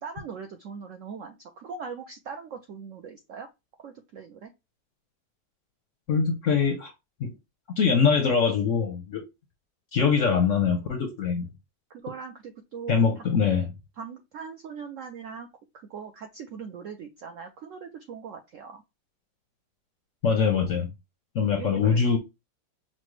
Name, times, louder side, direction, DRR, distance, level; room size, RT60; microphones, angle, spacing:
voice 1, 0.0-3.5 3.8-4.5 11.9-13.2 14.0-15.5 15.9-18.8 21.4-22.0, right 6 dB, 75° right, 0.7 m, -40 dB
voice 2, 6.1-6.9 7.2-7.3 7.8-9.2 9.9-11.5 12.9-13.7 20.2-20.9 21.3-22.2, left 6 dB, 65° left, 0.8 m, -23 dB
5.7 x 2.1 x 3.1 m
omnidirectional pair, 1.9 m